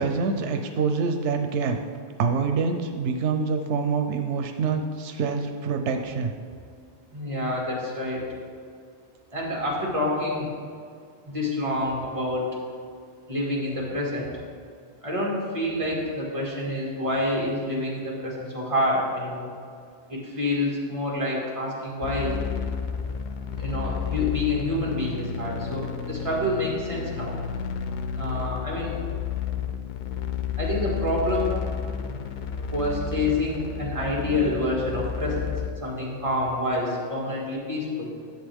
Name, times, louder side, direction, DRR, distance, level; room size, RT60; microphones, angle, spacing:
voice 1, 0.0-1.8 2.2-6.3, right 5 dB, 90° right, 5 dB, 0.9 m, -26 dB
voice 2, 7.1-8.2 9.3-10.5 11.3-12.5 13.3-14.3 15.0-19.5 20.1-22.4 23.6-27.3 28.1-28.9 30.6-31.5 32.7-35.5 35.8-38.1, left 1 dB, 30° right, -4 dB, 2.1 m, -27 dB
sound 1, 22.0-35.7, left 7 dB, 55° left, 0.6 m, -31 dB
11.0 x 7.4 x 3.5 m, 2.2 s
omnidirectional pair, 1.1 m